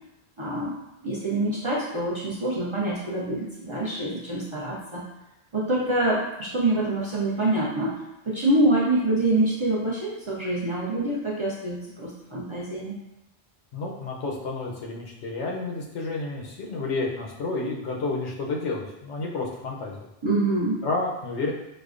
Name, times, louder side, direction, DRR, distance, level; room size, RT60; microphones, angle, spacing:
voice 1, 0.4-0.8 1.0-5.0 5.5-8.0 8.3-13.0 20.2-20.9, right 2 dB, 35° right, -6 dB, 0.5 m, -25 dB
voice 2, 13.7-20.1 20.8-21.5, left 3 dB, 85° left, -1 dB, 1.0 m, -30 dB
4.9 x 2.2 x 2.4 m, 0.92 s
omnidirectional pair, 1.1 m